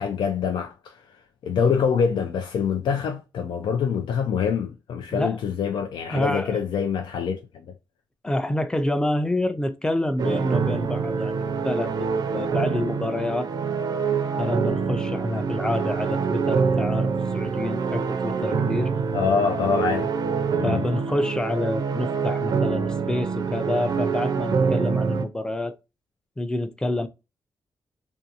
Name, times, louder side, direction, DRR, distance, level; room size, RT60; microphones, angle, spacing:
voice 1, 0.0-7.7 19.1-20.1 20.6-20.8, left 6 dB, 85° left, 0.4 m, -25 dB
voice 2, 6.1-6.6 8.2-13.5 14.4-18.9 20.6-25.8 26.4-27.1, left 1 dB, 10° left, 0.4 m, -27 dB
sound 1, 10.2-25.3, right 5 dB, 60° right, 0.4 m, -25 dB
2.5 x 2.3 x 2.7 m
cardioid pair, 95°, 8 cm